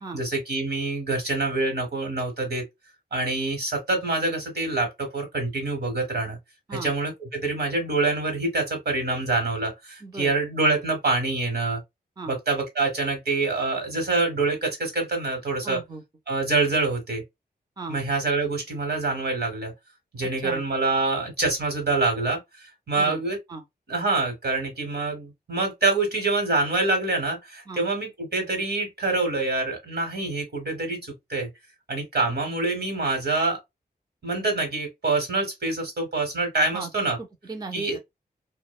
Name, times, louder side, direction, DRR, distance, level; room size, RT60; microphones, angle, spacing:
voice 1, 0.1-2.6 3.1-6.4 6.7-11.8 12.3-15.8 16.3-17.2 17.9-19.7 20.1-23.4 23.9-31.5 31.9-33.6 34.2-37.2 37.7-38.0, right 3 dB, 75° right, 1.1 m, -26 dB
voice 2, 10.0-10.3 12.2-12.3 15.6-16.0 17.8-18.0 20.4-20.6 23.0-23.2 23.5-23.6 27.7-27.8 36.7-36.9 37.2-38.0, right 3 dB, 25° right, 0.4 m, -36 dB
2.7 x 2.0 x 2.3 m
wide cardioid pair, 110°, 17 cm